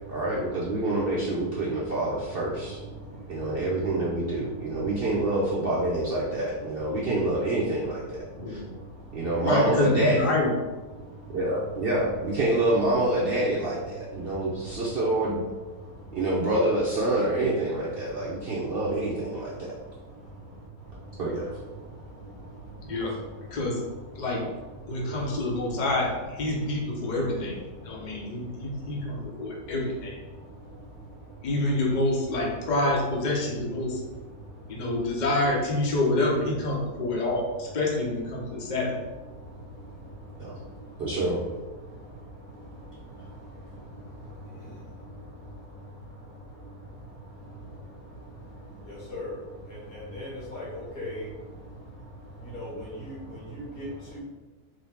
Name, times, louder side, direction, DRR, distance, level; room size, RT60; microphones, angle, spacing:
voice 1, 0.1-2.8 3.3-8.6 9.1-10.3 11.3-15.4 16.1-19.7 21.2-21.5 40.4-40.5 41.0-41.4, right 1 dB, 60° right, -6 dB, 0.6 m, -27 dB
voice 2, 8.3-8.7 9.4-10.5 22.8-23.2 23.5-23.8 24.2-24.5 24.9-30.2 31.4-34.0 34.7-39.0, left 2 dB, 40° left, -1 dB, 0.6 m, -27 dB
voice 3, 50.1-51.2 52.5-52.7 53.1-53.2 53.5-53.8 54.1-54.2, left 1 dB, 90° left, -5 dB, 1.9 m, -37 dB
3.8 x 2.7 x 3.5 m, 1.2 s
omnidirectional pair, 1.7 m